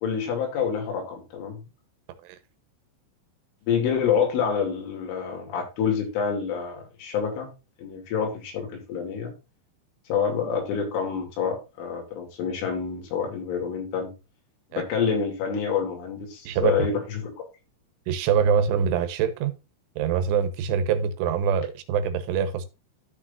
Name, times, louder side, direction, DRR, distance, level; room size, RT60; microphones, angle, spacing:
voice 1, 0.0-1.6 3.7-7.5 7.8-9.3 10.1-14.1 14.8-17.3, left 6 dB, 80° left, 5.1 m, -27 dB
voice 2, 18.1-19.5 20.0-22.7, right 7 dB, 80° right, 3.4 m, -24 dB
13.0 x 6.2 x 2.6 m
omnidirectional pair, 5.6 m